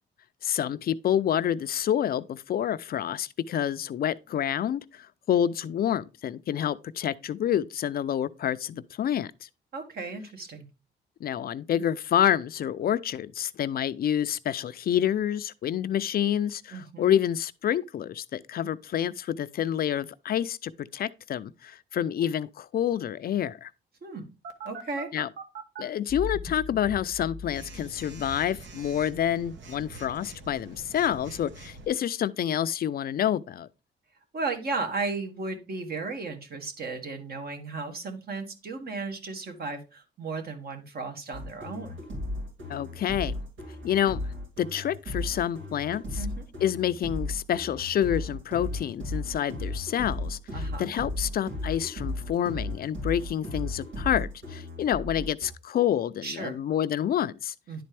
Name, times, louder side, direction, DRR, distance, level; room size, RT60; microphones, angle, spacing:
voice 1, 0.4-9.5 11.2-23.7 25.1-25.3 25.8-33.7 42.7-43.4 43.8-44.2 44.6-46.3 46.6-57.5, left 10 dB, 50° left, 0.4 m, -28 dB
voice 2, 9.7-10.7 16.7-17.2 24.0-24.3 24.6-25.1 34.3-42.0 46.1-46.4 50.5-50.9 56.2-56.6 57.7-57.8, right 3 dB, 50° right, 1.6 m, -35 dB
Telephone, 24.4-25.8 27.5-31.9, right 4 dB, 65° right, 1.2 m, -44 dB
sound 1, 26.1-29.6, left 4 dB, 15° right, 1.4 m, -40 dB
sound 2, 41.3-55.5, left 1 dB, 85° right, 3.6 m, -35 dB
10.5 x 4.2 x 3.3 m
cardioid pair, 90°, 20 cm